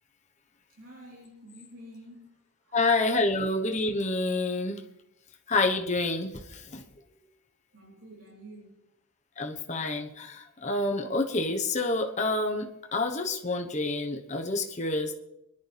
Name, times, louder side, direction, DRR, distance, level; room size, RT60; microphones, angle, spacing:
voice 1, 0.7-2.4 2.7-2.8 7.7-8.8, equal, 60° right, -5 dB, 3.9 m, -49 dB
voice 2, 2.7-4.8 5.5-6.8 9.4-15.1, left 2 dB, 30° left, 3 dB, 1.2 m, -28 dB
24.5 x 11.0 x 3.5 m, 0.85 s
head